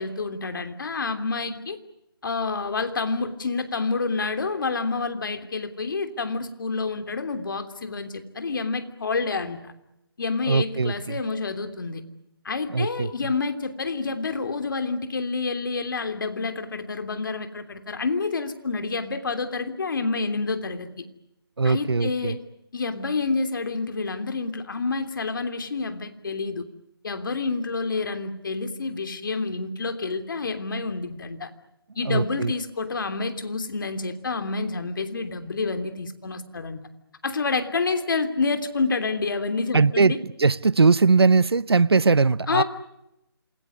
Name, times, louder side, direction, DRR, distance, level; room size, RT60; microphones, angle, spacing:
voice 1, 0.0-1.8 2.2-9.7 10.2-12.0 12.4-21.1 21.6-22.4 22.7-26.6 27.0-31.5 31.9-36.8 37.2-40.2 42.5-42.6, left 4 dB, 55° left, 3.1 m, -28 dB
voice 2, 10.5-11.2 12.7-13.3 21.6-22.3 32.0-32.5 39.7-42.6, right 4 dB, 85° right, 0.9 m, -20 dB
27.5 x 20.0 x 9.7 m
figure-of-eight pair, 165°, 13 cm